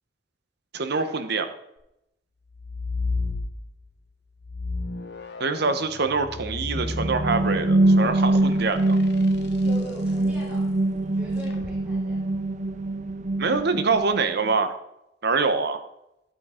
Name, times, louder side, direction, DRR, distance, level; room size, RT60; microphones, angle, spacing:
voice 1, 0.7-1.5 5.4-9.0 13.4-14.7 15.2-15.8, right 4 dB, 60° right, 9 dB, 1.0 m, -25 dB
sound 1, 2.5-3.9 4.4-9.9 11.4-11.8, left 3 dB, 65° left, 1.0 m, -33 dB
sound 2, 6.7-14.5, right 2 dB, 40° right, 0.6 m, -24 dB
voice 2, 9.6-10.7 11.0-12.2, left 1 dB, 5° right, -7 dB, 3.7 m, -41 dB
11.5 x 8.6 x 3.8 m, 0.85 s
head